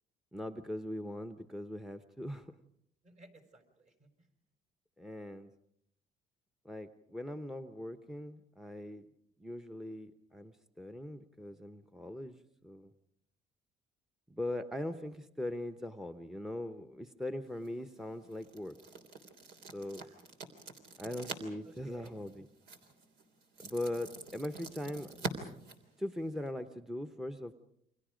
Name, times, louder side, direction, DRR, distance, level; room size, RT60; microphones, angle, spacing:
voice 1, 0.3-2.5 5.0-5.5 6.6-9.1 9.4-12.9 14.3-18.8 19.7-20.0 21.0-22.5 23.6-25.5 26.0-27.5, left 1 dB, 5° right, 8 dB, 0.9 m, -40 dB
voice 2, 3.0-4.3 20.0-20.3 20.9-21.1 21.6-22.2, right 2 dB, 45° right, 6 dB, 5.1 m, -58 dB
sound 1, 17.5-26.5, right 3 dB, 80° right, 3.5 m, -47 dB
29.0 x 25.0 x 5.1 m, 0.75 s
cardioid pair, 110°, 17 cm